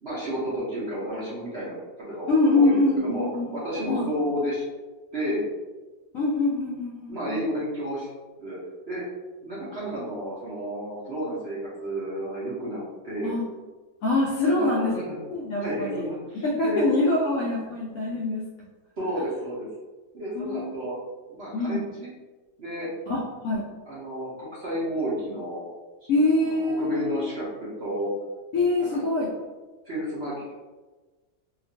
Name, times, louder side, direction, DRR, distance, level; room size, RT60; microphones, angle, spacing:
voice 1, 0.0-3.3 3.5-4.6 5.1-5.4 7.1-8.1 8.4-8.6 8.9-9.0 9.4-13.3 14.4-15.2 15.6-16.9 17.6-17.8 19.0-19.7 20.1-20.9 21.3-22.1 22.6-22.9 23.9-25.7 26.0-26.1 26.4-28.1 28.9-29.0 29.9-30.5, equal, 50° right, -9 dB, 0.8 m, -31 dB
voice 2, 2.3-3.5 3.9-4.1 6.1-7.4 13.2-13.5 14.0-14.9 15.3-16.1 16.4-18.5 20.4-20.7 21.5-21.8 23.1-23.6 26.1-27.3 28.5-29.3, left 2 dB, 70° left, -4 dB, 0.8 m, -24 dB
2.8 x 2.5 x 2.6 m, 1.2 s
omnidirectional pair, 1.8 m